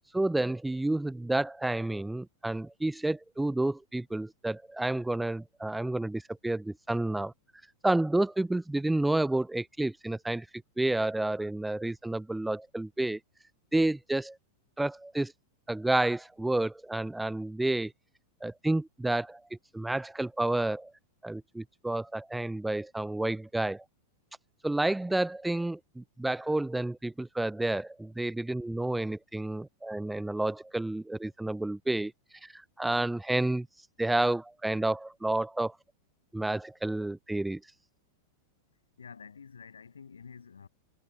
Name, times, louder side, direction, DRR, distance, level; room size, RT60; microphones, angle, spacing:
voice 1, 0.1-7.3 7.8-13.2 13.7-14.4 14.8-15.3 15.7-17.9 18.4-19.4 19.7-20.9 21.2-23.8 24.6-32.1 32.4-33.7 34.0-35.8 36.3-37.6, right 2 dB, 5° right, 0.6 m, -30 dB
voice 2, 39.0-40.7, left 6 dB, 70° left, 7.5 m, -48 dB
figure-of-eight pair, 90°, 0 cm